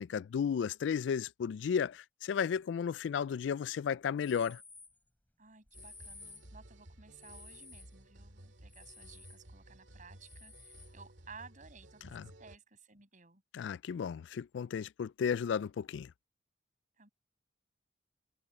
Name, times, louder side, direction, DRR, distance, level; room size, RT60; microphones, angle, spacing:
voice 1, 0.0-4.6 12.1-12.2 13.5-16.1, left 7 dB, 65° left, 0.3 m, -34 dB
sound 1, 4.2-5.0 5.7-6.5 7.2-8.0 8.7-9.5 10.2-11.0, left 3 dB, 10° left, 5.7 m, -54 dB
voice 2, 5.4-13.4 17.0-17.1, right 5 dB, 45° right, 6.4 m, -56 dB
sound 2, 5.7-12.6, right 1 dB, 70° right, 2.3 m, -55 dB
head